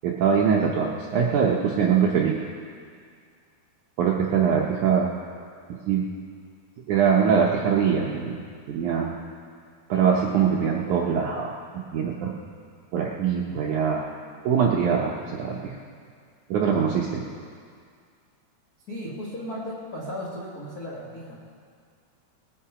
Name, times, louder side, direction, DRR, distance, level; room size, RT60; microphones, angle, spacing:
voice 1, 0.0-2.4 4.0-5.1 5.9-6.1 6.9-8.3 8.7-9.1 9.9-11.5 11.9-12.3 12.9-14.1 14.5-15.7 16.5-17.2, right 7 dB, 75° right, -2 dB, 1.8 m, -22 dB
voice 2, 18.9-21.4, equal, 75° left, -5 dB, 0.8 m, -35 dB
21.0 x 8.7 x 4.9 m, 2.1 s
omnidirectional pair, 4.6 m